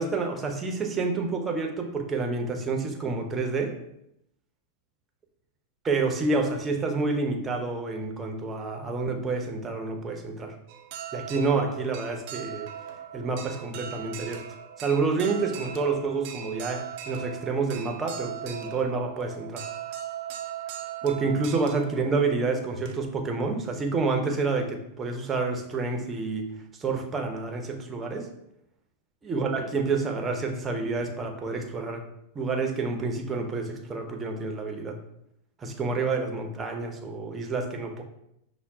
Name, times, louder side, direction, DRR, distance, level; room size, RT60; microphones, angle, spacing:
voice 1, 0.0-3.7 5.8-10.5 11.1-12.7 13.1-14.4 14.8-19.6 21.0-26.5 26.8-28.3 29.2-32.0 32.3-35.0 35.6-38.0, right 4 dB, 25° right, 3 dB, 0.7 m, -28 dB
sound 1, 10.7-23.3, right 10 dB, 55° right, 0.5 m, -39 dB
5.8 x 2.1 x 3.5 m, 0.79 s
hypercardioid pair, 100°, 0 cm